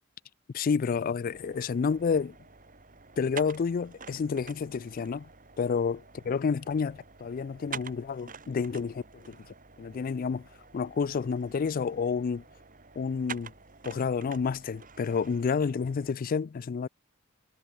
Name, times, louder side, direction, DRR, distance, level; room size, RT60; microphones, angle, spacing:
voice 1, 0.5-2.3 3.2-5.3 5.6-6.0 6.3-9.4 9.8-10.5 10.7-12.4 13.0-13.5 13.8-16.9, left 5 dB, 40° left, 0.3 m, -29 dB
sound 1, 1.3-16.1, right 6 dB, 40° right, 4.9 m, -48 dB
head